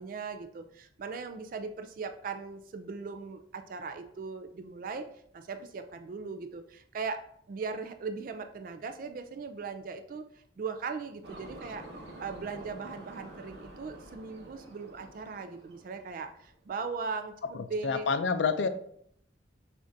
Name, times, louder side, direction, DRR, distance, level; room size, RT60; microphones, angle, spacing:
voice 1, 0.0-5.1 5.3-7.2 7.5-11.8 12.2-18.1, right 4 dB, 50° right, 8 dB, 0.3 m, -39 dB
sound 1, 11.2-16.6, right 1 dB, 65° right, 0.8 m, -48 dB
voice 2, 17.8-18.7, left 5 dB, 75° left, 10 dB, 0.4 m, -27 dB
6.6 x 2.5 x 2.6 m, 0.66 s
head